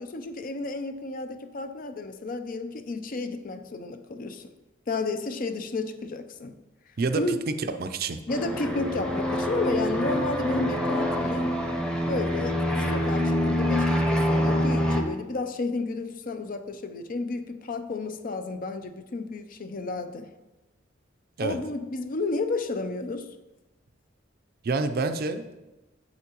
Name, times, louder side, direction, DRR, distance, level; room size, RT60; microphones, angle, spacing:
voice 1, 0.0-4.5 4.9-6.6 7.1-7.4 8.3-11.5 12.1-12.6 12.9-20.3 21.4-23.3, left 3 dB, 45° left, 0.5 m, -32 dB
voice 2, 7.0-8.2 21.4-21.6 24.6-25.6, right 3 dB, 55° right, 0.5 m, -28 dB
sound 1, 8.3-15.0, equal, 5° left, 0.8 m, -25 dB
8.2 x 7.3 x 3.0 m
head